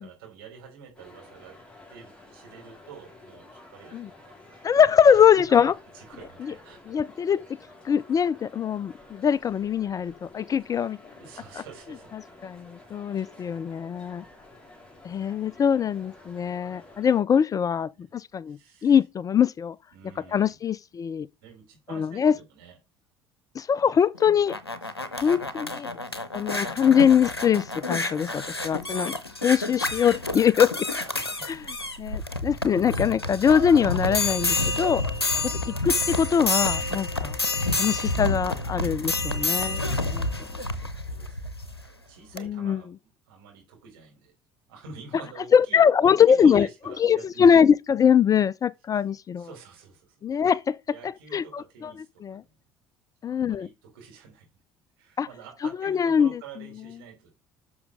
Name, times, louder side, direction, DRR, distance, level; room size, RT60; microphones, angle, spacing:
voice 1, 0.0-1.6 1.9-6.9 11.1-12.6 17.9-18.1 18.5-18.9 19.9-20.6 21.4-22.8 23.8-23.9 24.2-24.3 24.8-26.2 31.0-31.9 39.1-40.1 41.0-44.3 44.7-47.5 49.4-50.1 50.9-52.5 53.2-54.6 55.0-57.3, right 6 dB, 70° right, 5.0 m, -48 dB
sound 1, 0.9-17.2, left 2 dB, 10° left, 4.1 m, -50 dB
voice 2, 4.6-5.7 6.4-6.5 6.9-7.4 7.8-11.0 12.4-14.2 15.0-19.8 20.3-21.3 21.9-22.4 23.6-24.6 25.2-25.9 26.3-29.1 29.4-30.9 31.4-31.6 32.0-35.0 35.7-37.4 37.8-40.3 42.4-42.8 45.5-46.7 47.0-49.5 50.2-50.8 51.0-51.9 52.2-52.4 53.2-53.7 55.2-55.3 55.8-56.3, left 7 dB, 30° left, 0.4 m, -22 dB
sound 2, 24.2-41.8 42.4-42.5, left 2 dB, 90° left, 0.7 m, -29 dB
11.5 x 6.3 x 3.6 m
figure-of-eight pair, 55°, 13 cm